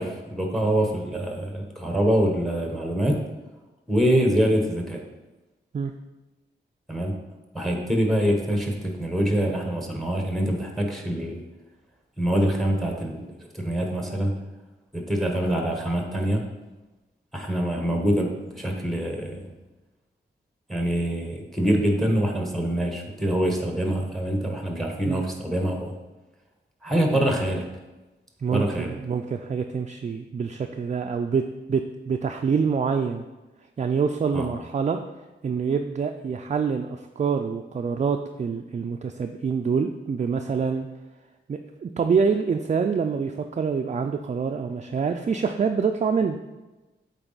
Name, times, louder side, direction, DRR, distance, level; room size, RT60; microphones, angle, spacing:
voice 1, 0.0-3.3 3.9-5.0 6.9-7.2 7.5-11.4 12.2-13.3 13.5-14.3 14.9-16.5 17.3-19.5 20.7-25.9 26.8-27.6 28.5-28.9 34.3-34.5, right 1 dB, ahead, 2 dB, 1.1 m, -25 dB
voice 2, 28.4-31.4 31.7-33.2 33.8-35.0 35.4-40.9 41.5-46.4, right 5 dB, 40° right, 5 dB, 0.4 m, -26 dB
7.9 x 4.1 x 4.0 m, 1.1 s
wide cardioid pair, 80°, 19 cm